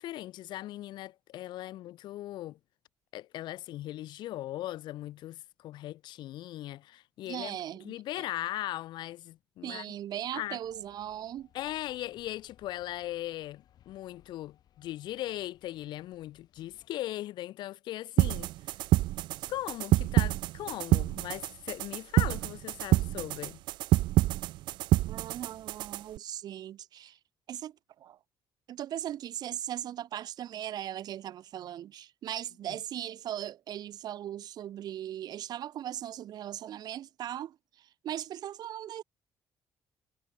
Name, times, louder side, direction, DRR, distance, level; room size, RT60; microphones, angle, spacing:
voice 1, 0.0-2.6 3.1-7.6 7.8-9.9 10.3-10.6 11.5-18.5 19.5-23.6 32.7-32.8, left 14 dB, 80° left, 2.0 m, -39 dB
voice 2, 7.3-8.3 9.6-11.5 25.0-27.2 27.5-28.2 28.7-39.0, right 11 dB, 60° right, 1.2 m, -39 dB
sound 1, 10.6-16.9, left 11 dB, 60° left, 4.4 m, -64 dB
sound 2, 18.2-26.2, right 16 dB, 85° right, 0.5 m, -27 dB
cardioid pair, 130°, 8 cm